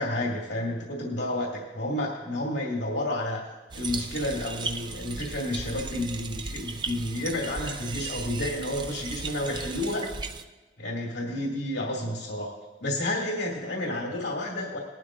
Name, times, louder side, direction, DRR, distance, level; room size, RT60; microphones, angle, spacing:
voice 1, 0.0-3.4 3.7-10.1 10.8-12.5 12.8-14.8, left 1 dB, 90° left, -3 dB, 2.3 m, -30 dB
sound 1, 3.7-10.4, right 4 dB, 25° right, 0.4 m, -36 dB
19.0 x 12.0 x 2.5 m, 1.2 s
head